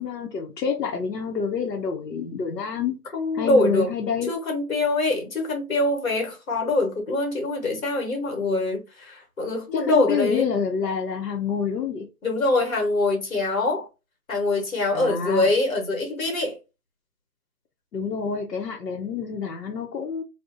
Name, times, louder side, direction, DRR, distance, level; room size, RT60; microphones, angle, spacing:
voice 1, 0.0-3.0 3.3-4.3 9.7-12.1 14.9-15.5 17.9-20.2, left 6 dB, 85° left, 0.7 m, -27 dB
voice 2, 3.1-3.9 4.3-10.5 12.2-13.9 14.3-16.6, left 2 dB, 55° left, 1.2 m, -24 dB
2.5 x 2.0 x 2.6 m
figure-of-eight pair, 165°, 49 cm